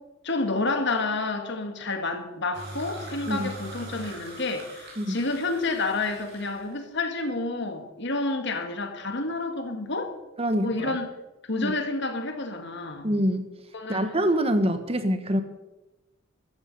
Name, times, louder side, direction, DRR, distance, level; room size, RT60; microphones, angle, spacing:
voice 1, 0.2-10.1 10.6-11.1 11.5-13.1 13.7-14.0, left 3 dB, 60° left, 6 dB, 2.0 m, -29 dB
sound 1, 2.5-6.7, right 2 dB, 55° right, 6.0 m, -42 dB
voice 2, 10.4-11.0 11.6-11.7 13.0-13.5 13.9-15.4, equal, 30° right, 9 dB, 1.2 m, -25 dB
15.5 x 13.5 x 5.4 m, 1.0 s
head